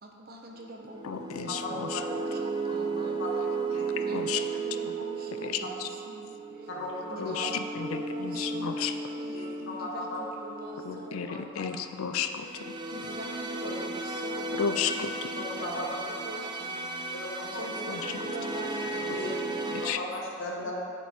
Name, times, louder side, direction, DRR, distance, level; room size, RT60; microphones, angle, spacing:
voice 1, 0.0-1.5 2.0-3.2 4.1-6.7 7.1-11.9 12.9-19.6 20.6-20.7, right 1 dB, 45° right, 1 dB, 0.8 m, -44 dB
sound 1, 0.6-19.9, right 3 dB, 20° right, 0.4 m, -35 dB
voice 2, 1.0-2.0 4.0-4.4 5.4-5.9 7.2-8.9 10.8-12.8 14.6-15.3 17.9-18.1 19.7-20.0, left 7 dB, 75° left, 8 dB, 0.4 m, -33 dB
voice 3, 6.7-7.4 9.3-10.2 11.6-11.7 13.6-13.8 15.6-15.9 17.1-17.7 19.1-19.3 20.0-20.7, left 1 dB, 55° left, -3 dB, 1.0 m, -36 dB
8.6 x 5.4 x 4.3 m, 2.5 s
head